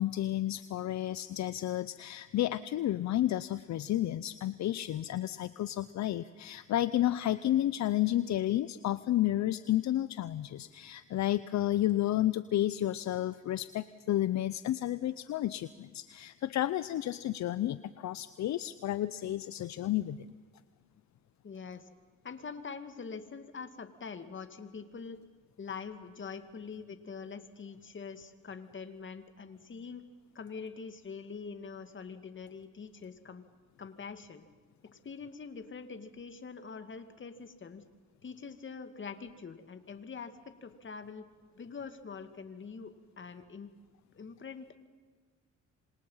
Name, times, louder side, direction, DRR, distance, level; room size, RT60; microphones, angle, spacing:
voice 1, 0.0-20.3, left 13 dB, 65° left, 15 dB, 0.7 m, -31 dB
voice 2, 21.4-21.9 22.2-25.2 25.6-30.0 30.3-33.4 33.8-34.5 34.8-37.8 38.2-41.3 41.5-43.7 44.1-44.8, left 5 dB, 40° left, 9 dB, 2.2 m, -44 dB
27.0 x 26.0 x 5.7 m, 1.5 s
cardioid pair, 90°, 30 cm